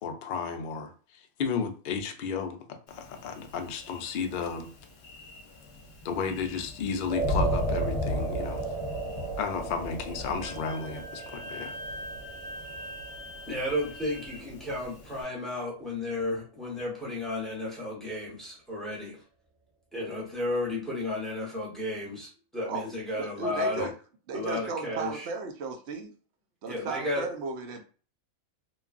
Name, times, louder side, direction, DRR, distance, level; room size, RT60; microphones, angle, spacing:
voice 1, 0.0-4.7 6.0-8.7 9.4-11.8 23.8-23.9, left 6 dB, 85° left, 5 dB, 0.4 m, -33 dB
Thunder, 2.9-15.2, left 1 dB, 55° left, 0.8 m, -37 dB
sound 1, 7.1-15.4, right 4 dB, 40° right, 0.3 m, -37 dB
Wind instrument woodwind instrument, 10.4-14.4, equal, 85° right, 1.9 m, -43 dB
voice 2, 13.5-19.2 19.9-23.9 24.3-25.3 26.7-27.2, left 1 dB, ahead, -5 dB, 0.8 m, -33 dB
voice 3, 23.1-23.9 24.3-26.1 26.6-27.8, right 4 dB, 60° right, 4 dB, 0.7 m, -35 dB
3.2 x 2.3 x 2.4 m, 0.38 s
omnidirectional pair, 1.5 m